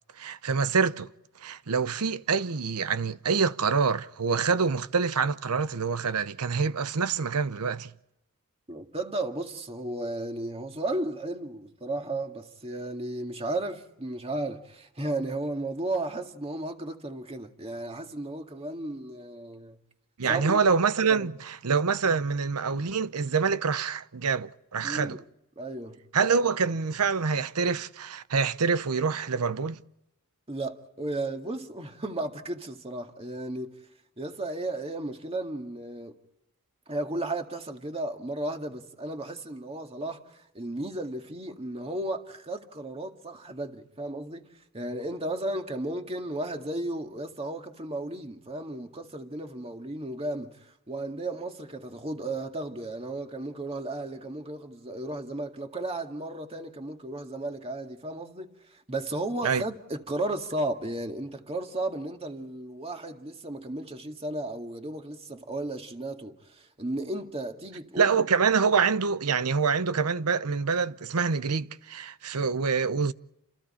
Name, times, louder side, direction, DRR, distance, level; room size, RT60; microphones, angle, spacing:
voice 1, 0.2-1.1 1.4-7.9 20.2-25.2 26.1-29.8 59.4-59.6 68.0-73.1, right 5 dB, 85° right, 0.8 m, -26 dB
voice 2, 8.7-19.8 20.3-20.6 21.1-21.3 24.8-25.2 25.6-26.0 30.5-33.8 34.2-36.2 36.9-40.2 40.5-50.6 50.9-68.2, right 2 dB, 25° right, 2.0 m, -34 dB
29.0 x 28.0 x 4.4 m
head